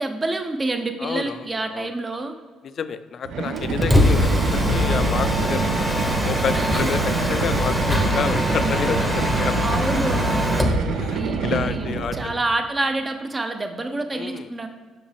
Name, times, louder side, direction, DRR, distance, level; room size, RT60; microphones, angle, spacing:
voice 1, 0.0-2.4 6.5-7.0 9.6-10.8 11.1-14.7, right 2 dB, 25° right, 6 dB, 0.6 m, -28 dB
voice 2, 1.0-1.9 2.6-5.7 6.2-7.0 7.3-9.9 11.0-12.4 14.1-14.5, left 7 dB, 55° left, 12 dB, 0.3 m, -29 dB
sound 1, 3.2-12.3, right 5 dB, 75° right, 0.5 m, -26 dB
Mechanisms, 3.6-10.8, left 1 dB, ahead, 0.9 m, -22 dB
5.9 x 5.1 x 3.4 m, 1.5 s
cardioid pair, 80°, 0 cm